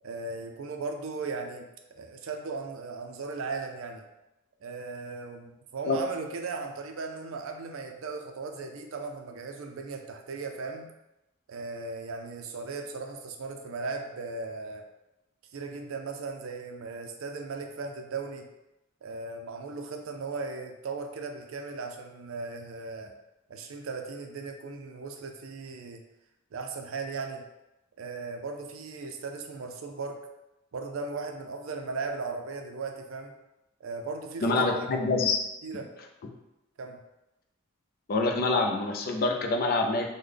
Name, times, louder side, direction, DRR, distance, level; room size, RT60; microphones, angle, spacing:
voice 1, 0.0-4.0 4.6-10.9 11.5-14.9 15.5-18.5 19.0-23.1 23.5-26.0 26.5-27.4 28.0-30.2 30.7-33.3 33.8-34.9 35.6-35.9 36.8-37.0, right 4 dB, 65° right, 4 dB, 0.4 m, -37 dB
voice 2, 34.4-35.4 38.1-40.1, left 3 dB, 45° left, 3 dB, 0.4 m, -26 dB
3.7 x 2.1 x 3.3 m, 0.94 s
head